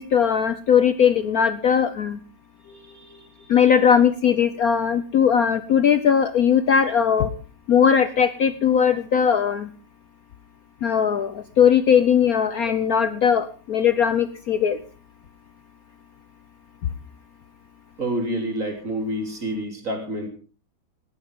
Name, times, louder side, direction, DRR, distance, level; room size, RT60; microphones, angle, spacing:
voice 1, 0.0-2.2 3.5-7.3 7.7-9.7 10.8-14.8, left 7 dB, 55° left, 11 dB, 1.2 m, -19 dB
voice 2, 2.6-3.8 18.0-20.3, right 1 dB, 40° right, 2 dB, 4.1 m, -29 dB
20.0 x 15.0 x 3.8 m, 0.36 s
omnidirectional pair, 2.1 m